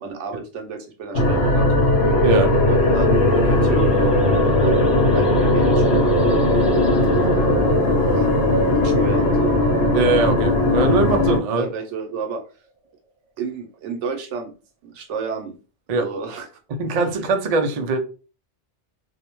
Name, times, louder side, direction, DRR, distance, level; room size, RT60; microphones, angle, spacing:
voice 1, 0.0-1.9 2.7-6.6 8.0-8.3 8.7-9.6 11.5-12.4 13.4-14.5 14.8-15.5 16.0-16.5, right 5 dB, 80° right, 4 dB, 0.9 m, -31 dB
sound 1, 1.1-11.4, left 2 dB, 70° left, 0.9 m, -18 dB
sound 2, 1.9-11.3, right 1 dB, ahead, 0.6 m, -25 dB
voice 2, 2.2-2.5 9.9-11.7 15.9-16.0 16.8-18.0, right 3 dB, 60° right, 5 dB, 0.4 m, -21 dB
2.5 x 2.1 x 2.9 m, 0.35 s
omnidirectional pair, 1.2 m